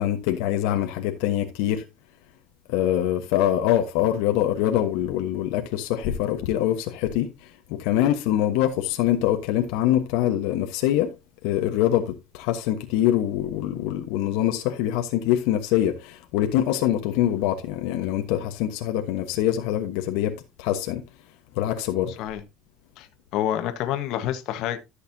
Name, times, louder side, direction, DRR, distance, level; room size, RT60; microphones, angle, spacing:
voice 1, 0.0-1.8 2.7-11.1 11.4-21.0 21.5-22.1, left 12 dB, 80° left, 1.2 m, -24 dB
voice 2, 23.0-24.8, left 11 dB, 60° left, 1.3 m, -28 dB
13.5 x 6.6 x 2.8 m
cardioid pair, 140°, 0 cm